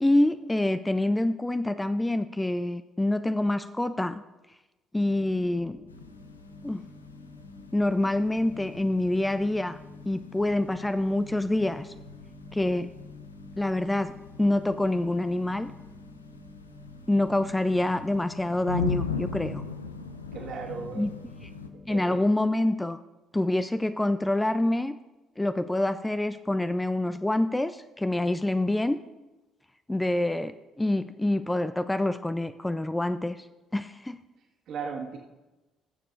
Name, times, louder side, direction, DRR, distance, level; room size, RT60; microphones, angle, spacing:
voice 1, 0.0-4.2 4.9-5.8 6.6-6.8 7.7-9.8 10.1-11.9 12.5-12.9 13.6-14.1 14.4-15.7 17.1-19.7 21.0-21.1 21.9-23.0 23.3-25.0 25.4-29.0 29.9-33.5 33.7-34.2, left 1 dB, 10° left, 11 dB, 0.4 m, -26 dB
sound 1, 5.0-22.0, left 3 dB, 15° right, 1.5 m, -49 dB
sound 2, 5.9-21.7, left 4 dB, 85° left, 0.4 m, -40 dB
voice 2, 20.3-21.1 21.9-22.2 34.7-35.2, right 5 dB, 55° right, -1 dB, 1.9 m, -36 dB
20.0 x 7.3 x 2.7 m, 1.1 s
figure-of-eight pair, 50°, 0 cm